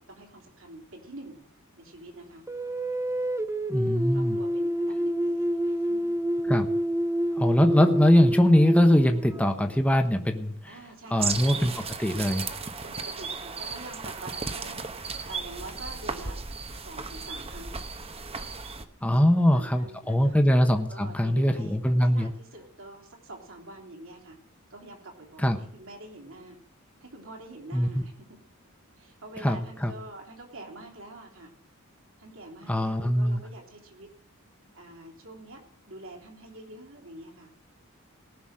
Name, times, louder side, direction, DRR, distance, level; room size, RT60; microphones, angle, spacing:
voice 1, 0.0-1.4 1.8-2.4 4.1-6.1 10.7-11.4 12.8-16.4 16.7-17.8 19.1-20.4 20.7-24.4 24.7-26.6 27.0-28.4 29.0-31.5 32.2-34.1 34.7-37.5, right 2 dB, 65° right, 2 dB, 3.4 m, -46 dB
sound 1, 2.5-9.8, equal, 15° right, 0.6 m, -28 dB
voice 2, 3.7-4.4 6.5-6.7 7.4-10.5 11.1-12.5 19.0-22.3 25.4-25.6 27.7-28.0 29.4-29.6 29.8-29.9 32.7-33.4, equal, 5° left, 5 dB, 1.1 m, -22 dB
sound 2, 11.2-18.8, right 4 dB, 30° right, 1.0 m, -35 dB
18.5 x 6.2 x 7.5 m, 0.68 s
head